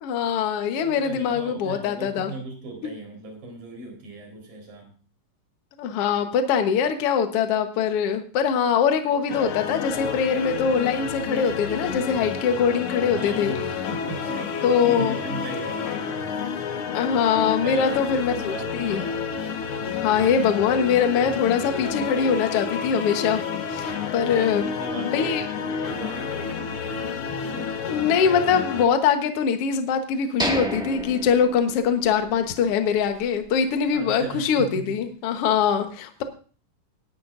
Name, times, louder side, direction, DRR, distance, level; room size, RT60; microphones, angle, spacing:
voice 1, 0.0-2.3 5.8-13.5 14.6-15.2 16.9-19.0 20.0-23.4 23.7-24.6 25.1-25.4 27.9-36.2, left 7 dB, 55° left, 6 dB, 1.7 m, -23 dB
voice 2, 0.8-4.9 13.1-16.7 17.6-19.2 24.2-27.7 33.1-33.3 33.9-35.0 35.3-35.4, right 3 dB, 60° right, 2 dB, 5.6 m, -38 dB
sound 1, 9.3-28.9, left 6 dB, 85° left, 1.2 m, -30 dB
sound 2, 30.4-32.3 32.6-32.7 33.3-33.4, equal, 5° right, 0.8 m, -30 dB
19.0 x 10.5 x 2.6 m, 0.39 s
omnidirectional pair, 4.0 m